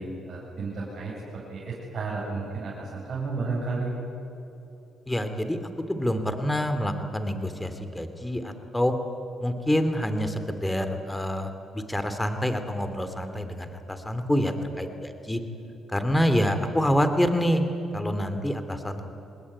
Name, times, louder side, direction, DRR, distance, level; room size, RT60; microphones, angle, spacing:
voice 1, 0.0-3.9, right 3 dB, 50° right, -5 dB, 7.9 m, -32 dB
voice 2, 5.1-5.6 5.9-8.9 9.4-15.4 15.9-17.6 17.9-19.1, equal, 10° left, 8 dB, 2.9 m, -27 dB
25.5 x 20.5 x 9.8 m, 2.9 s
cardioid pair, 90°, 0 cm